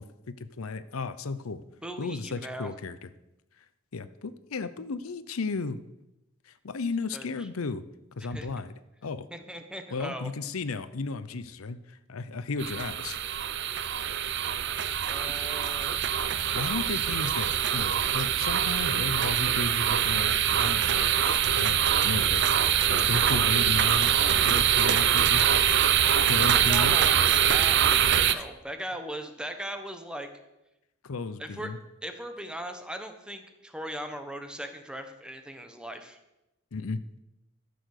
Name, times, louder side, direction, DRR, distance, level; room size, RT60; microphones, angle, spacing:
voice 1, 0.0-1.6 2.0-3.1 3.9-5.8 6.5-7.8 8.2-8.7 9.0-9.3 9.9-13.2 16.4-22.4 22.9-25.4 26.2-27.0 28.3-28.4 31.0-31.8 36.7-37.0, left 3 dB, 90° left, 13 dB, 0.7 m, -34 dB
voice 2, 1.8-2.7 7.1-7.3 8.2-8.5 9.3-10.3 15.1-16.0 26.5-30.3 31.4-31.7 32.0-36.2, right 1 dB, 5° right, 7 dB, 1.1 m, -39 dB
sound 1, 12.6-28.3, right 9 dB, 55° right, 0.6 m, -24 dB
13.0 x 6.9 x 6.6 m, 0.92 s
head